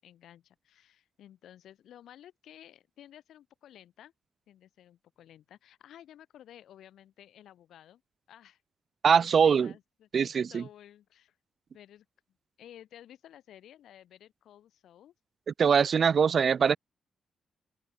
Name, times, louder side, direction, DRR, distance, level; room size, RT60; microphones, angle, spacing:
voice 1, 0.0-4.1 4.5-8.0 8.3-8.6 9.2-11.4 11.7-12.1 12.6-15.1, left 11 dB, 80° left, 5.3 m, -54 dB
voice 2, 9.0-9.7 10.1-10.6 15.6-16.8, right 6 dB, 60° right, 0.5 m, -22 dB
open air
supercardioid pair, 50°, 0 cm